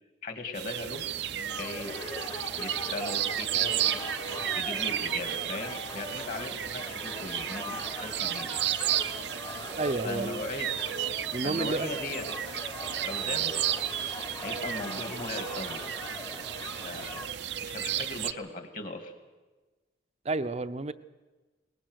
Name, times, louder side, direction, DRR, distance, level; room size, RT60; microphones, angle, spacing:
voice 1, 0.2-1.0 1.3-1.9 2.6-4.1 4.5-8.6 10.0-10.9 11.4-12.5 13.0-13.5 14.0-14.1 14.4-15.8 16.5-17.2 17.6-19.1, left 2 dB, 45° left, 6 dB, 2.2 m, -38 dB
sound 1, 0.5-18.3, right 11 dB, 75° right, 0.6 m, -33 dB
sound 2, 1.5-17.3, left 2 dB, 25° left, 1.1 m, -41 dB
voice 2, 9.8-10.4 11.3-11.9 20.2-20.9, right 2 dB, 35° right, 12 dB, 0.6 m, -30 dB
23.0 x 19.5 x 6.4 m, 1.2 s
head